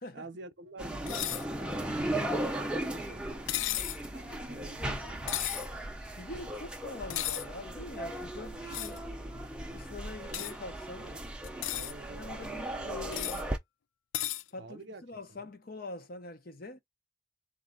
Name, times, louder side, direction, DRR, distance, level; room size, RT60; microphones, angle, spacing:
voice 1, 0.1-3.5 4.0-5.4 10.1-10.4 10.9-11.2 11.7-12.6 14.6-15.0, right 3 dB, 60° right, 0.7 m, -48 dB
sound 1, 0.8-13.6, right 1 dB, 5° right, 0.6 m, -37 dB
sound 2, 1.1-1.4 3.5-4.0 5.3-5.7 7.1-7.4 8.7-9.0 10.3-10.5 11.4-11.9 13.1-13.4 14.1-14.4, left 13 dB, 80° left, 0.4 m, -34 dB
voice 2, 6.2-9.1 9.7-11.1 12.1-13.5 14.5-16.8, left 2 dB, 50° left, 0.8 m, -44 dB
4.2 x 2.5 x 3.8 m
head